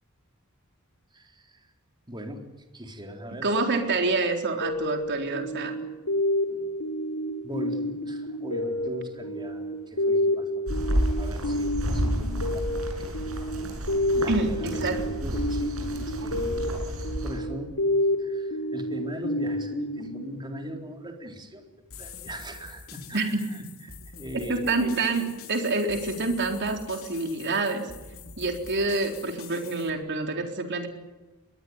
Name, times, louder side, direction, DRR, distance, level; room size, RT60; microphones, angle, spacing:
voice 1, 1.1-1.6 2.1-3.5 7.4-10.6 11.2-12.8 14.1-16.9 17.2-17.8 18.2-21.7 22.0-24.7, equal, 20° right, 3 dB, 4.0 m, -40 dB
voice 2, 3.4-5.8 14.3-15.1 23.1-23.2 24.5-27.9 28.4-30.9, right 3 dB, 55° right, 4 dB, 3.9 m, -27 dB
sound 1, 4.6-20.9, left 1 dB, 90° left, 3.4 m, -30 dB
sound 2, 10.7-17.4, equal, 70° right, 7.2 m, -30 dB
sound 3, 21.9-29.9, left 6 dB, 70° left, 3.4 m, -45 dB
22.5 x 19.0 x 9.8 m, 1.1 s
head